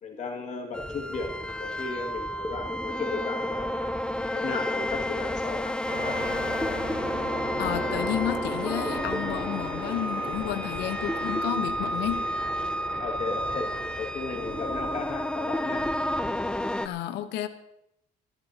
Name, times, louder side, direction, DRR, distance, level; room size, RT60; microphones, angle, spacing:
voice 1, 0.0-1.3 1.6-4.0 4.3-5.8 6.0-6.4 13.0-13.7 14.0-15.9, left 4 dB, 45° left, 0 dB, 2.2 m, -35 dB
sound 1, 0.7-16.9, left 1 dB, 5° left, 0.5 m, -31 dB
sound 2, 5.8-15.0, right 1 dB, 30° right, 6.4 m, -37 dB
voice 2, 7.6-12.2 16.8-17.5, left 12 dB, 85° left, 10 dB, 1.1 m, -31 dB
26.0 x 11.5 x 2.9 m, 0.81 s
cardioid pair, 110°, 17 cm